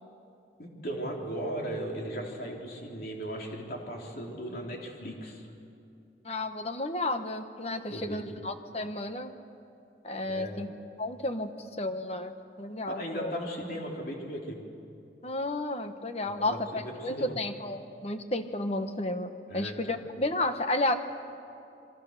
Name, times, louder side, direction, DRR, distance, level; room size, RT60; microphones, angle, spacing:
voice 1, 0.6-5.4 7.9-8.2 10.3-10.6 12.9-14.6 16.2-17.3 19.5-19.8, equal, 50° left, 0 dB, 3.5 m, -37 dB
voice 2, 6.2-9.3 10.0-10.7 11.0-11.5 11.8-13.3 15.2-21.0, left 2 dB, 35° left, 8 dB, 1.2 m, -32 dB
27.5 x 23.5 x 6.6 m, 2.6 s
head